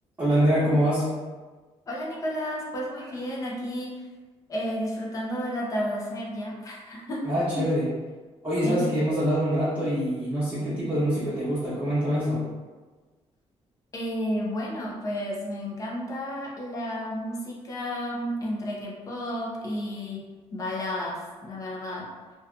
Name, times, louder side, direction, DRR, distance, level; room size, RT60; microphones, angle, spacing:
voice 1, 0.2-1.1 7.2-7.9 8.4-12.4, equal, 10° right, -16 dB, 1.1 m, -24 dB
voice 2, 1.9-4.0 4.5-7.3 8.6-8.9 13.9-20.2 20.5-22.0, equal, 30° left, -3 dB, 0.5 m, -32 dB
2.8 x 2.2 x 2.4 m, 1.3 s
cardioid pair, 170°, 12 cm